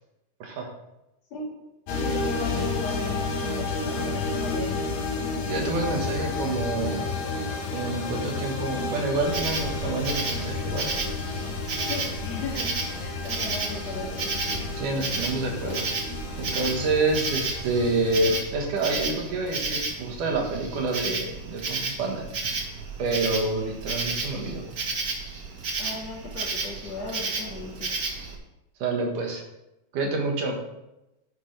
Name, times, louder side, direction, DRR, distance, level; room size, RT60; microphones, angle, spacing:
sound 1, 1.9-18.4, left 3 dB, 85° left, 3.2 m, -31 dB
voice 1, 2.0-4.8 11.9-12.7 12.9-14.4 25.8-27.9, left 3 dB, 55° left, -2 dB, 2.9 m, -37 dB
voice 2, 5.5-7.1 7.7-10.9 14.8-15.9 16.4-22.2 23.0-24.6 28.8-29.4 29.9-30.6, right 2 dB, 70° right, 1 dB, 3.0 m, -28 dB
Insect, 9.2-28.3, right 4 dB, 90° right, 0.8 m, -32 dB
sound 2, 10.4-10.7 12.6-12.9 13.2-13.3 14.5-14.8 16.4-16.7, right 1 dB, 20° right, 2.8 m, -42 dB
10.5 x 10.0 x 3.4 m, 0.92 s
omnidirectional pair, 3.8 m